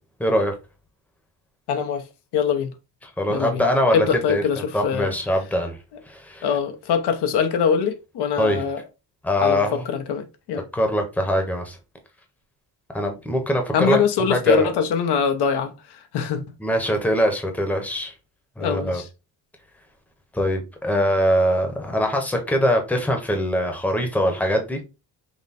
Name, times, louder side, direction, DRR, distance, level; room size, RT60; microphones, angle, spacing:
voice 1, 0.2-0.6 3.0-5.8 6.1-6.5 8.4-8.6 9.2-9.8 10.7-11.8 12.9-14.0 14.3-14.7 16.6-18.1 18.6-19.0 20.3-24.8, equal, 5° left, 0.9 m, -22 dB
voice 2, 1.7-2.0 2.3-2.7 3.3-3.6 3.9-5.1 6.4-8.8 9.4-10.6 13.7-15.7 16.1-16.4 18.6-19.0, left 7 dB, 75° left, 0.9 m, -23 dB
5.8 x 2.1 x 4.1 m
cardioid pair, 155°, 40 cm